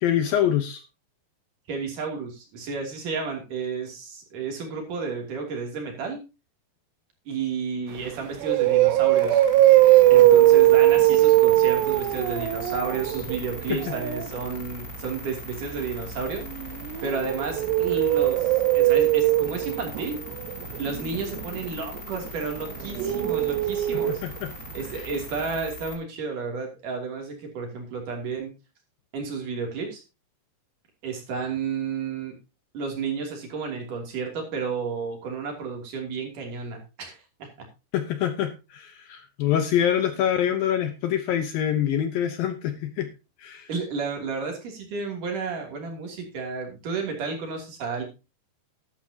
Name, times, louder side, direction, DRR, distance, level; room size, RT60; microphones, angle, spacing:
voice 1, 0.0-0.8 13.7-13.9 23.9-24.5 37.9-43.1 43.4-43.7, left 10 dB, 75° left, 9 dB, 2.3 m, -25 dB
voice 2, 1.7-6.2 7.3-9.4 10.1-16.4 17.0-20.2 20.8-24.2 24.7-28.5 29.1-30.0 31.0-32.3 32.7-37.7 43.7-48.0, right 5 dB, 50° right, 2 dB, 4.1 m, -32 dB
sound 1, 8.0-8.1 8.4-14.3 16.4-24.5 24.7-24.8 25.2-25.3, right 15 dB, 85° right, 3.1 m, -20 dB
sound 2, 9.2-26.0, left 3 dB, 25° left, 3.0 m, -41 dB
13.0 x 12.0 x 2.8 m, 0.28 s
omnidirectional pair, 4.9 m